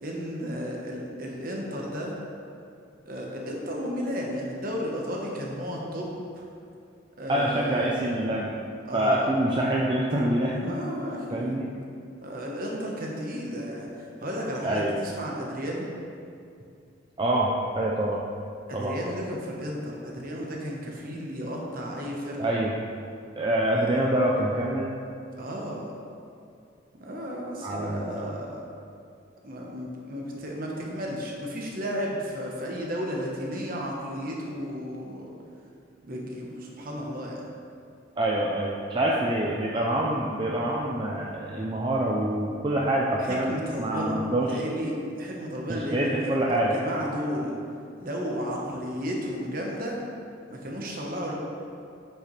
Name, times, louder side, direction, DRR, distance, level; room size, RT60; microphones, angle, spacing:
voice 1, 0.0-2.1 3.1-6.4 7.2-7.9 8.9-9.3 10.6-11.6 12.2-15.9 18.7-22.5 23.7-24.1 25.4-25.9 27.0-28.6 29.4-35.4 36.0-37.5 43.2-47.6 48.0-50.0 50.5-51.3, equal, 50° right, -2 dB, 1.2 m, -33 dB
voice 2, 7.3-8.5 8.9-10.6 11.3-11.7 14.6-15.0 17.2-17.5 17.8-18.2 18.7-19.0 22.4-22.7 23.4-24.9 27.6-28.3 38.2-43.5 43.8-44.5 45.7-46.8, right 1 dB, 25° right, -4 dB, 0.5 m, -26 dB
8.1 x 6.6 x 3.3 m, 2.5 s
head